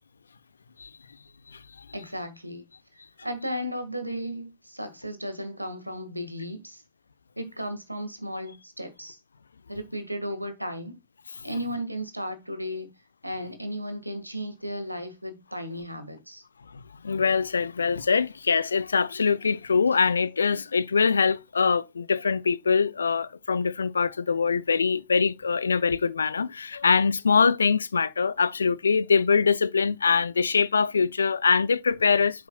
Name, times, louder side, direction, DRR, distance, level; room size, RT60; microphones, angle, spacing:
voice 1, 1.9-2.7 3.2-6.8 7.4-9.2 9.7-11.0 11.4-12.9 13.2-16.4, equal, 90° right, 1.6 m, -35 dB
voice 2, 16.7-32.5, left 5 dB, 75° left, 0.5 m, -23 dB
8.7 x 7.3 x 2.2 m
figure-of-eight pair, 90°, 0 cm